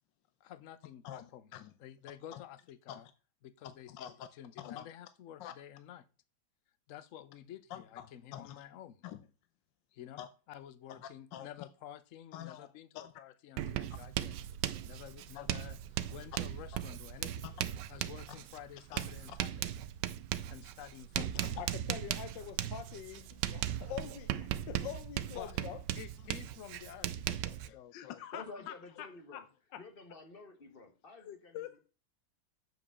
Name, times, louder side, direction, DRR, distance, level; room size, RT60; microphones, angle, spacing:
voice 1, 0.4-1.5 1.8-3.1 3.4-6.1 6.9-9.0 9.9-10.2 10.5-14.3 14.7-17.4 17.9-19.7 20.5-21.5 25.3-25.6 26.0-28.0, left 11 dB, 60° left, 0.9 m, -51 dB
voice 2, 1.0-1.7 2.3-2.4 2.9-3.0 3.6-4.3 4.6-4.9 5.4-5.5 7.7-8.1 8.3-8.6 9.0-9.2 10.2-10.3 10.9-11.5 12.3-12.7 12.9-13.1 15.3-15.6 17.4-17.6 18.3-18.4 18.9-19.4 21.1-25.8 27.6-29.4 29.7-29.8 31.2-31.8, left 11 dB, 75° left, 1.4 m, -46 dB
Writing, 13.6-27.7, right 12 dB, 75° right, 1.2 m, -38 dB
voice 3, 28.2-29.4 29.8-31.6, left 3 dB, 30° left, 1.4 m, -50 dB
7.4 x 5.1 x 7.1 m
omnidirectional pair, 2.1 m